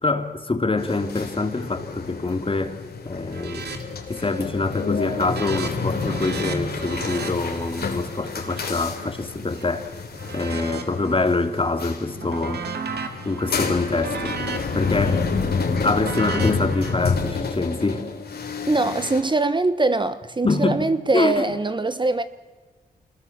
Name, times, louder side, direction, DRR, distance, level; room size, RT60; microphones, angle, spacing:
voice 1, 0.0-3.7 4.1-10.0 10.3-12.6 13.2-15.3 15.8-18.1 20.4-20.8 21.1-21.3, left 3 dB, 30° left, 2.7 m, -25 dB
sound 1, 0.8-19.2, left 4 dB, 70° left, 3.5 m, -29 dB
sound 2, 3.3-3.8 4.1-4.5 4.8-9.6 10.1-11.5 11.8-16.9, right 5 dB, 75° right, 2.7 m, -35 dB
voice 2, 18.7-22.2, right 3 dB, 30° right, 1.1 m, -22 dB
25.5 x 21.0 x 7.3 m
cardioid pair, 65°, 17 cm